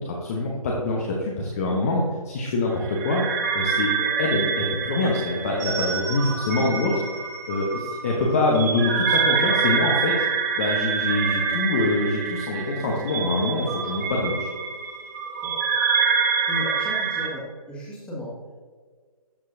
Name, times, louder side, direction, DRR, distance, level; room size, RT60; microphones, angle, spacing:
voice 1, 0.0-3.2 3.5-6.9 7.5-10.1 10.6-14.5, left 2 dB, 25° left, -2 dB, 0.9 m, -25 dB
sound 1, 2.8-17.3, right 6 dB, 30° right, 1.2 m, -26 dB
voice 2, 16.5-17.4 17.7-18.3, left 1 dB, 5° left, -7 dB, 1.8 m, -34 dB
12.5 x 4.7 x 2.7 m, 1.6 s
figure-of-eight pair, 150°, 19 cm